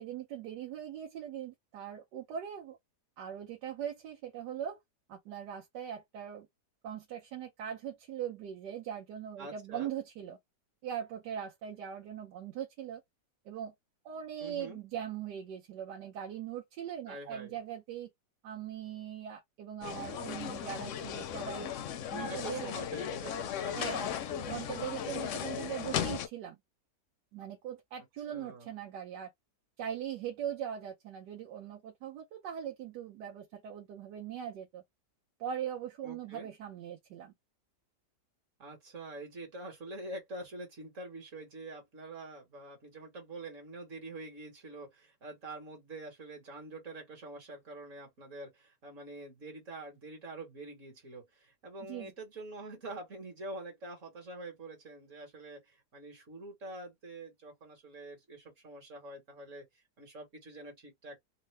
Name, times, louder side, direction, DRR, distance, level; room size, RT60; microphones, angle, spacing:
voice 1, 0.0-2.8 3.2-4.8 5.1-6.5 6.8-10.4 10.8-13.0 13.4-13.7 14.0-18.1 18.4-21.7 22.1-22.7 23.7-26.6 27.3-29.3 29.8-34.8 35.4-37.3 51.8-52.1, right 9 dB, 90° right, 1.3 m, -40 dB
voice 2, 9.4-9.9 14.4-14.8 17.1-17.6 22.1-24.0 28.3-28.7 36.0-36.5 38.6-61.2, right 2 dB, 50° right, 1.5 m, -46 dB
sound 1, 19.8-26.3, left 9 dB, 70° left, 0.7 m, -36 dB
3.7 x 2.1 x 3.2 m
omnidirectional pair, 1.8 m